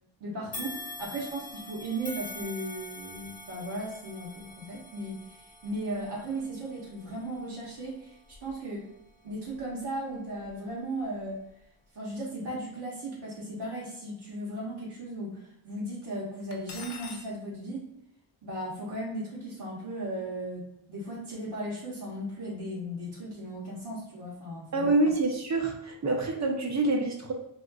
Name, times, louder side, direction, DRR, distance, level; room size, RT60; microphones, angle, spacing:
voice 1, 0.2-8.1 8.4-8.9 9.2-11.4 11.9-17.9 18.4-24.9, right 1 dB, 65° right, -5 dB, 1.1 m, -36 dB
sound 1, 0.5-9.8 10.3-10.5 11.5-11.6, left 2 dB, 20° left, 0.6 m, -45 dB
Cutlery silverware, 16.5-17.3, left 5 dB, 70° left, 0.5 m, -42 dB
voice 2, 24.7-27.3, right 2 dB, 40° right, 2 dB, 0.7 m, -26 dB
4.2 x 2.4 x 2.3 m, 0.81 s
wide cardioid pair, 115°, 43 cm